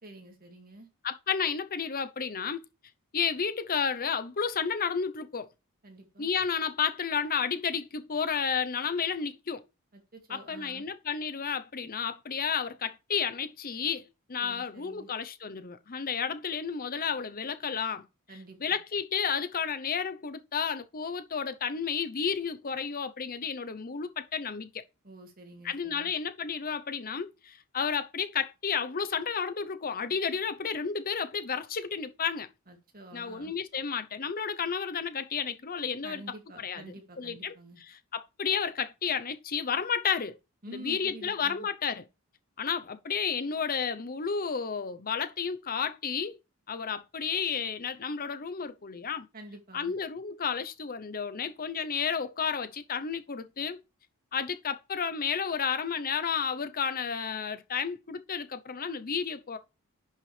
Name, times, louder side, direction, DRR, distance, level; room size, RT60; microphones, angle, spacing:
voice 1, 0.0-0.9 5.8-6.3 9.9-10.9 14.4-15.1 18.3-18.8 25.0-26.1 32.7-33.5 36.0-37.8 40.6-41.7 49.3-50.0, right 1 dB, 40° right, 2.4 m, -48 dB
voice 2, 1.0-2.6 3.1-5.5 6.2-9.6 10.3-14.0 14.3-18.0 18.6-24.7 25.6-32.5 33.1-36.2 36.6-36.8 37.2-37.5 37.9-40.4 40.7-42.0 42.6-46.4 46.7-49.3 49.7-53.8 54.3-59.6, left 6 dB, 40° left, 0.8 m, -32 dB
10.5 x 5.7 x 3.4 m
head